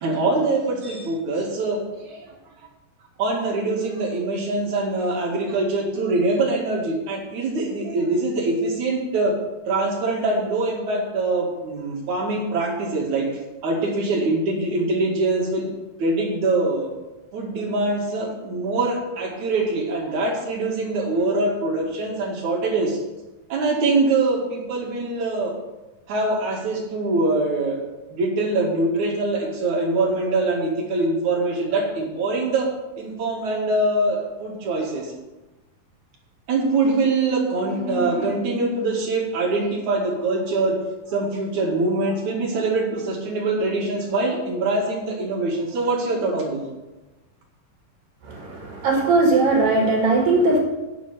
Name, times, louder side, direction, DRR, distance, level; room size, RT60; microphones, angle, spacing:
voice 1, 0.0-2.3 3.2-9.3 9.7-13.3 13.6-15.7 16.0-16.9 17.3-23.0 23.5-25.5 26.1-27.8 28.1-32.7 33.0-35.1 36.5-40.7 41.1-46.6, right 2 dB, 60° right, -1 dB, 3.3 m, -23 dB
voice 2, 48.2-50.6, right 2 dB, 75° right, -2 dB, 3.8 m, -19 dB
9.2 x 7.7 x 6.8 m, 1.1 s
omnidirectional pair, 4.0 m